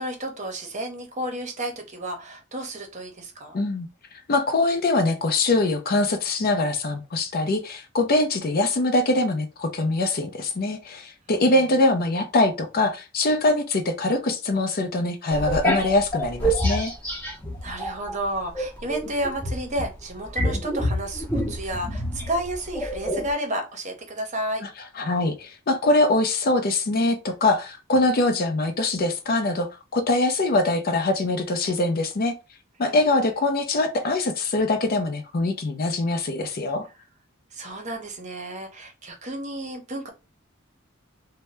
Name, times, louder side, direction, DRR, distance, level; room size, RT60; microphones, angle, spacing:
voice 1, 0.0-3.5 11.3-11.6 17.6-24.7 32.8-33.3 37.5-40.1, right 1 dB, 35° right, 0.8 m, -32 dB
voice 2, 3.5-3.9 4.3-16.9 24.6-24.7 24.9-32.3 32.8-36.9, left 2 dB, 45° left, 0.5 m, -23 dB
sound 1, 15.3-18.2 18.5-23.3, equal, 10° left, 0.7 m, -27 dB
2.7 x 2.1 x 3.2 m
head